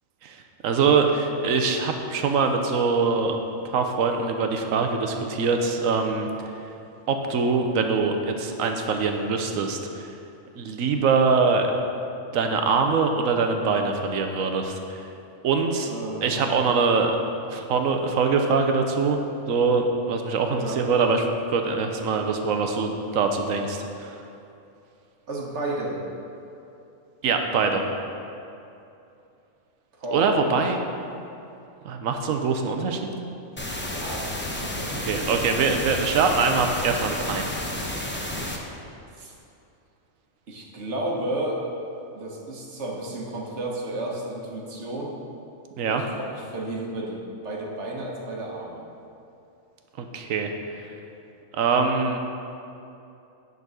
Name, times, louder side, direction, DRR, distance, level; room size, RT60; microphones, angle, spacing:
voice 1, 0.6-3.4 3.7-6.3 7.1-10.1 10.6-11.7 12.3-15.1 15.4-15.9 16.2-17.1 17.5-19.2 19.5-21.2 21.5-24.2 27.2-27.8 30.1-30.8 31.8-33.1 34.9-37.5 45.8-46.0 50.0-50.5 51.5-52.2, right 4 dB, 80° right, 4 dB, 1.1 m, -23 dB
voice 2, 15.9-16.6 20.6-20.8 25.3-26.0 30.0-30.3 33.9-35.1 39.2-39.3 40.5-41.6 42.1-45.2 45.8-48.8, right 1 dB, 60° right, -1 dB, 1.4 m, -32 dB
sound 1, 33.6-38.6, left 1 dB, 15° left, 0.5 m, -31 dB
9.6 x 4.0 x 6.2 m, 2.7 s
omnidirectional pair, 1.4 m